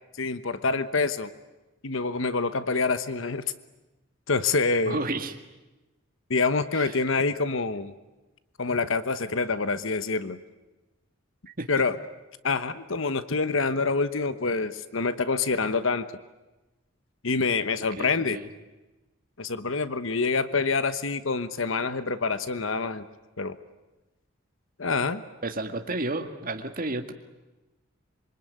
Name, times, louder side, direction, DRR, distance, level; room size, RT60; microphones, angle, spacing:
voice 1, 0.2-1.3 1.8-3.4 4.3-5.0 6.3-7.9 8.6-10.4 11.7-12.0 12.4-16.1 17.2-18.4 19.4-23.0 23.4-23.6 24.8-25.2, left 4 dB, 65° left, 12 dB, 1.1 m, -26 dB
voice 2, 4.9-5.3 6.7-7.0 11.6-11.7 18.0-18.5 25.4-27.1, right 2 dB, 45° right, 5 dB, 1.9 m, -31 dB
26.5 x 24.0 x 9.4 m, 1.1 s
head